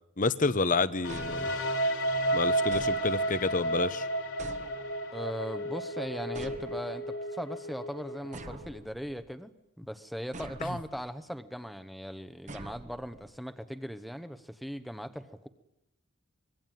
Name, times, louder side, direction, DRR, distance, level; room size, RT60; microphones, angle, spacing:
voice 1, 0.2-1.5 2.3-4.1, left 3 dB, 35° left, 0.9 m, -29 dB
sound 1, 1.0-8.8, right 1 dB, 65° left, 3.3 m, -32 dB
sound 2, 1.1-2.0 2.7-3.5 4.4-5.3 6.3-7.2 8.3-9.4 10.3-11.1 12.5-13.4, right 2 dB, 35° right, 1.2 m, -46 dB
voice 2, 5.1-15.5, equal, ahead, 1.0 m, -39 dB
25.0 x 22.0 x 9.1 m
head